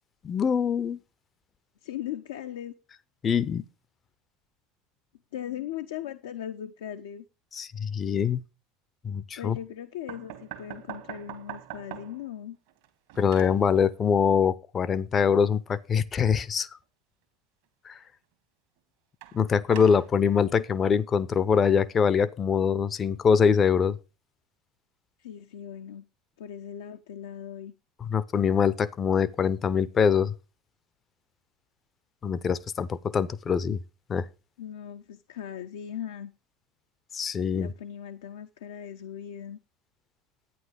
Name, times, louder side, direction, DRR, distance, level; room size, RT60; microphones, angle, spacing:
voice 1, 0.2-1.0 3.2-3.6 7.6-8.4 9.0-9.6 13.2-16.7 17.9-18.0 19.3-24.0 28.0-30.3 32.2-33.8 34.1-34.2 37.1-37.7, left 6 dB, 30° left, 0.7 m, -24 dB
voice 2, 1.8-2.7 5.3-7.2 9.4-12.6 25.2-26.0 26.4-27.7 34.6-36.3 37.5-39.6, left 10 dB, 65° left, 0.7 m, -38 dB
sound 1, 10.1-12.3 12.7-13.6 19.2-20.1, right 12 dB, 60° right, 1.5 m, -42 dB
11.0 x 9.5 x 4.9 m
figure-of-eight pair, 75°, 0 cm